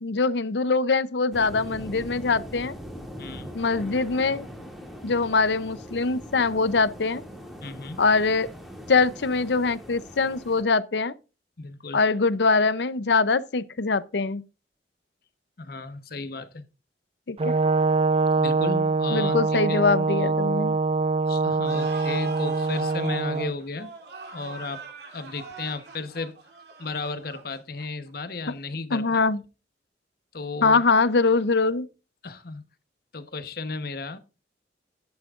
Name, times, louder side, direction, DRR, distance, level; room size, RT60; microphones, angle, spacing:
voice 1, 0.0-2.7 3.5-4.5 5.0-7.2 8.0-8.5 8.9-11.1 11.9-14.4 17.3-17.5 19.1-20.8 28.9-29.4 30.6-31.9, left 4 dB, 75° left, 0.7 m, -23 dB
sound 1, 1.3-10.6, equal, ahead, 2.3 m, -41 dB
voice 2, 3.2-3.6 7.6-8.0 11.6-12.0 15.6-16.6 18.3-19.8 21.3-23.9 24.3-24.8 25.1-26.4 26.8-29.2 30.3-30.8 32.2-32.6 33.1-34.2, left 3 dB, 60° left, 1.1 m, -34 dB
Brass instrument, 17.4-23.5, right 4 dB, 35° right, 0.4 m, -24 dB
sound 2, 21.6-28.1, right 4 dB, 65° right, 3.2 m, -40 dB
12.5 x 10.5 x 2.5 m
head